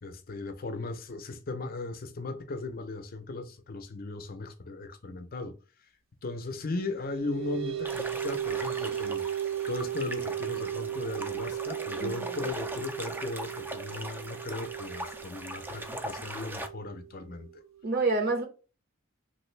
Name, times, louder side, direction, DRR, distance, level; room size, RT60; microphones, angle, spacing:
voice 1, 0.0-5.6 6.2-9.2 9.7-17.5, left 3 dB, 45° left, 0.5 m, -37 dB
sound 1, 6.8-17.8, right 11 dB, 80° right, 0.6 m, -36 dB
sound 2, 7.8-16.7, right 1 dB, 10° right, 0.3 m, -40 dB
voice 2, 11.9-12.5 17.8-18.4, right 3 dB, 50° right, 1.0 m, -28 dB
3.1 x 2.6 x 3.2 m
head